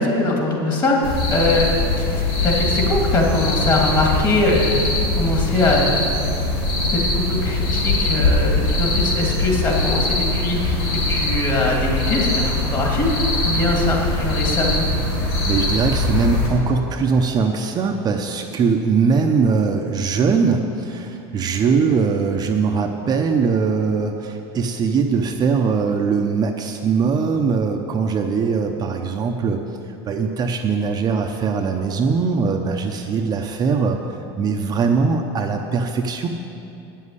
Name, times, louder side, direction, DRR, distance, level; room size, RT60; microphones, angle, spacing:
voice 1, 0.0-2.0 2.4-4.8 5.2-5.9 6.9-14.9, left 2 dB, 30° left, -1 dB, 2.6 m, -22 dB
sound 1, 1.0-16.5, left 2 dB, 85° left, 2.9 m, -21 dB
voice 2, 15.4-29.6 30.0-34.0 34.4-36.3, right 5 dB, 30° right, 3 dB, 0.7 m, -21 dB
9.2 x 7.5 x 8.2 m, 2.8 s
supercardioid pair, 125°, 13 cm